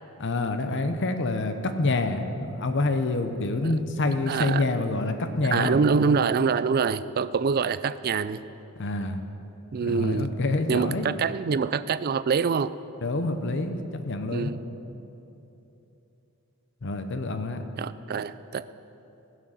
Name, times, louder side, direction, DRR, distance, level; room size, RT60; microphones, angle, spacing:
voice 1, 0.2-5.8 8.8-9.2 9.8-11.1 13.0-14.5 16.8-17.6, left 2 dB, 55° left, 8 dB, 0.9 m, -27 dB
voice 2, 4.3-4.6 5.5-8.4 9.7-10.3 10.7-12.7 14.3-14.6 17.8-18.6, right 5 dB, 45° right, 15 dB, 0.4 m, -25 dB
15.5 x 6.3 x 8.1 m, 3.0 s
head